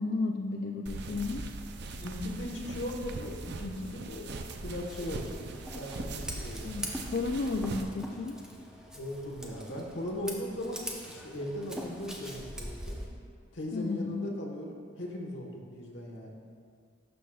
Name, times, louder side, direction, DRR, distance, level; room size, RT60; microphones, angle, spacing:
voice 1, 0.0-1.4 6.6-8.4 13.7-14.4, left 3 dB, 55° left, 2 dB, 0.4 m, -33 dB
sound 1, 0.9-7.8, right 2 dB, 65° right, 0.5 m, -41 dB
voice 2, 2.0-4.3 4.6-5.5 5.7-6.7 8.9-13.0 13.5-16.3, left 1 dB, 75° left, 0 dB, 1.2 m, -38 dB
Scissors, 4.9-13.1, equal, 5° right, 0.7 m, -43 dB
12.0 x 6.2 x 2.3 m, 2.1 s
head